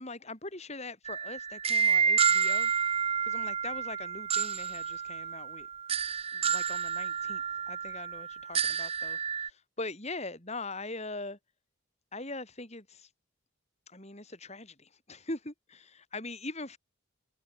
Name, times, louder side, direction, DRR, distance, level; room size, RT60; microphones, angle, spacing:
voice 1, 0.0-2.7 3.2-5.7 6.3-11.4 12.1-13.1 13.9-16.8, left 2 dB, 30° left, 3.5 m, -42 dB
sound 1, 1.1-9.5, right 7 dB, 25° right, 0.6 m, -30 dB
open air
head